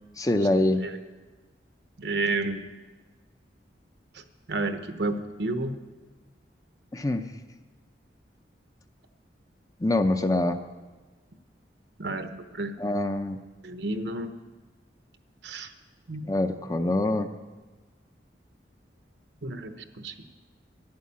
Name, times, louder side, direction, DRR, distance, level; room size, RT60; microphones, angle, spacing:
voice 1, 0.2-0.8 6.9-7.3 9.8-10.6 12.8-13.4 16.2-17.3, left 1 dB, 20° left, 8 dB, 0.6 m, -25 dB
voice 2, 2.0-2.7 4.1-4.2 4.5-5.7 12.0-12.7 13.6-14.3 15.4-15.7 16.1-16.3 19.4-20.3, right 2 dB, 70° right, 8 dB, 1.0 m, -31 dB
11.5 x 9.3 x 8.6 m, 1.3 s
head